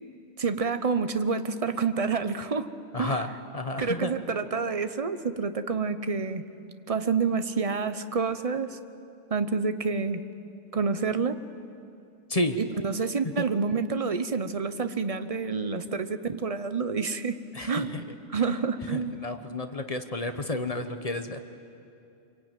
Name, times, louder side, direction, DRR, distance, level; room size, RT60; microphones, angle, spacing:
voice 1, 0.4-2.7 3.0-3.3 3.8-6.4 6.9-8.8 9.3-10.2 10.7-11.4 12.5-18.0 18.3-19.2, right 5 dB, 30° right, 11 dB, 0.7 m, -28 dB
voice 2, 2.9-3.3 3.5-4.1 12.3-12.6 13.4-13.5 17.5-18.0 18.3-18.4 18.9-21.4, left 2 dB, 30° left, 7 dB, 1.0 m, -31 dB
25.5 x 23.5 x 9.1 m, 2.6 s
omnidirectional pair, 1.5 m